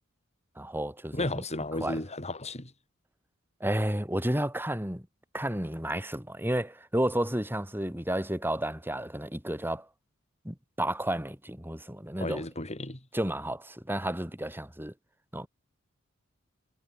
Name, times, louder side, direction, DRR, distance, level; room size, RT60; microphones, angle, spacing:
voice 1, 0.6-1.4 1.8-2.0 3.6-5.1 5.3-9.9 10.4-12.4 13.1-14.9 15.3-15.5, right 1 dB, 10° right, 6.1 m, -31 dB
voice 2, 1.1-2.7 12.2-13.0, left 2 dB, 35° left, 6.6 m, -34 dB
head